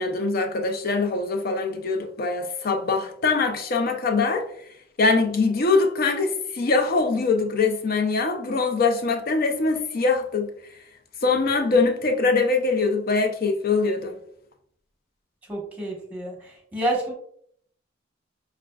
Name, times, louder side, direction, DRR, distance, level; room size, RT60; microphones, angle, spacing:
voice 1, 0.0-4.5 5.0-10.5 11.2-14.1, left 3 dB, 50° left, 0.5 m, -23 dB
voice 2, 15.5-16.3 16.7-17.1, right 1 dB, 10° right, 1.0 m, -28 dB
5.6 x 2.5 x 2.3 m
head